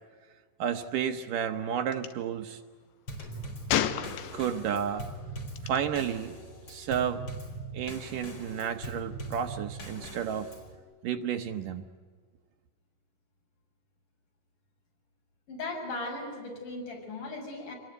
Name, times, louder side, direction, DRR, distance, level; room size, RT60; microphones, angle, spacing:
voice 1, 0.6-2.6 4.3-5.0 5.6-6.3 6.7-7.2 7.7-10.5 11.0-11.9, right 8 dB, 70° right, 6 dB, 2.4 m, -31 dB
Gunshot gunfire, 1.9-2.1 3.7-4.7 5.6-5.8, left 11 dB, 90° left, 3.0 m, -30 dB
Drum kit / Snare drum / Bass drum, 3.1-10.8, right 2 dB, 35° left, 4.9 m, -41 dB
voice 2, 15.5-17.7, left 2 dB, 55° left, 1 dB, 8.1 m, -37 dB
27.5 x 21.0 x 9.2 m, 1.5 s
omnidirectional pair, 4.3 m